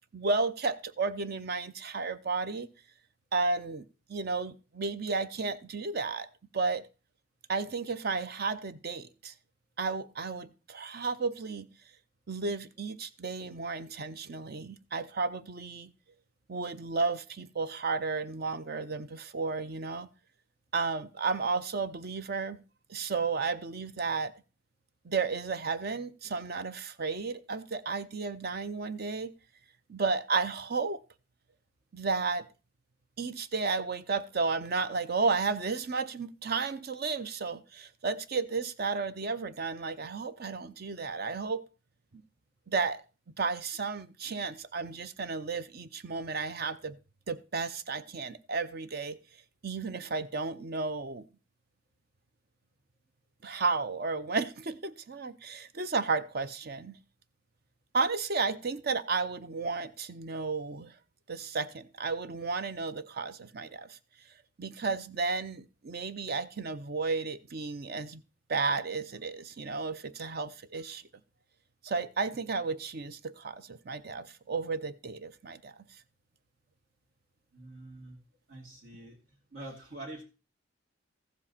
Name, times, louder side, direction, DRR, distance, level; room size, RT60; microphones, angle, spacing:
voice 1, 0.1-2.7 3.3-6.3 6.5-6.8 7.5-9.3 9.8-11.7 12.3-15.9 16.5-20.1 20.7-22.6 22.9-24.3 25.0-29.3 29.9-31.0 31.9-32.5 33.2-41.6 42.7-43.0 43.4-47.0 47.3-49.2 49.6-51.2 53.4-57.0 57.9-60.9 61.3-64.0 64.6-68.2 68.5-71.0 71.8-75.7, right 4 dB, 50° right, 0.7 m, -33 dB
voice 2, 77.5-78.2 78.5-79.2 79.5-80.2, right 1 dB, 70° right, 2.7 m, -45 dB
14.5 x 7.5 x 4.2 m
head